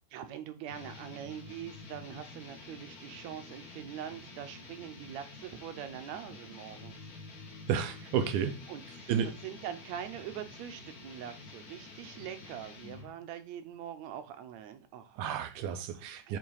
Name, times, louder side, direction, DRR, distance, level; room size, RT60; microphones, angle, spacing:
voice 1, 0.1-6.9 8.7-9.1 9.4-15.2 15.9-16.4, right 10 dB, 70° right, 1.9 m, -43 dB
sound 1, 0.7-13.2, left 3 dB, 50° left, 1.1 m, -49 dB
voice 2, 7.7-8.6 9.1-9.3 15.2-16.4, right 8 dB, 90° right, 2.3 m, -31 dB
8.9 x 3.3 x 4.8 m
omnidirectional pair, 3.5 m